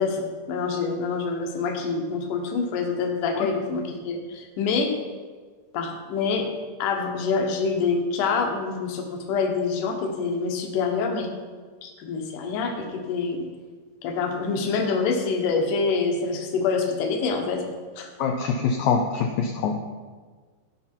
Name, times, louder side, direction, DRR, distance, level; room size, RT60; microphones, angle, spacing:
voice 1, 0.0-4.9 5.7-6.5 6.8-11.3 11.8-13.4 14.0-17.7 18.0-18.1, left 4 dB, 65° left, 3 dB, 2.1 m, -26 dB
voice 2, 18.2-19.8, left 5 dB, 90° left, 2 dB, 2.0 m, -24 dB
16.0 x 5.6 x 4.5 m, 1.5 s
omnidirectional pair, 4.9 m